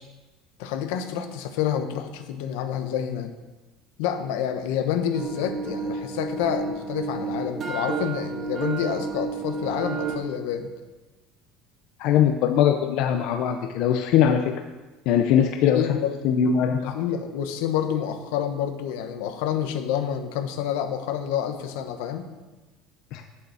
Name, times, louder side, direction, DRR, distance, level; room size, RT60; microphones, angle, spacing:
voice 1, 0.6-3.4 4.0-10.7 15.7-16.1 16.9-22.3, left 9 dB, 85° left, 7 dB, 1.2 m, -28 dB
sound 1, 5.1-10.2, right 5 dB, 35° right, 2.1 m, -31 dB
voice 2, 12.0-14.5 15.1-16.0 16.2-16.9 23.1-23.2, left 9 dB, 65° left, 4 dB, 0.8 m, -21 dB
8.3 x 8.2 x 7.2 m, 1.2 s
cardioid pair, 150°, 0 cm